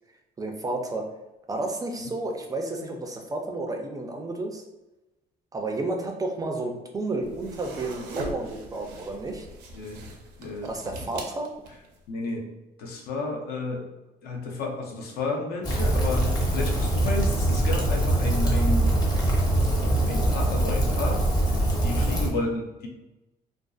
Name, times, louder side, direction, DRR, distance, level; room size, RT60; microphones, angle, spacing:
voice 1, 0.4-1.1 1.5-4.6 5.5-9.5 10.6-11.5, right 2 dB, 20° right, 3 dB, 0.3 m, -31 dB
sound 1, 7.2-12.0, right 2 dB, 85° right, 0.5 m, -41 dB
voice 2, 9.7-10.0 10.4-10.7 12.1-12.5 12.8-13.8 14.2-18.9 20.1-22.9, left 2 dB, 70° left, 1 dB, 0.6 m, -32 dB
Rain, 15.6-22.3, right 1 dB, 25° left, 0.7 m, -23 dB
2.5 x 2.3 x 2.3 m, 1.0 s
cardioid pair, 110°, 17 cm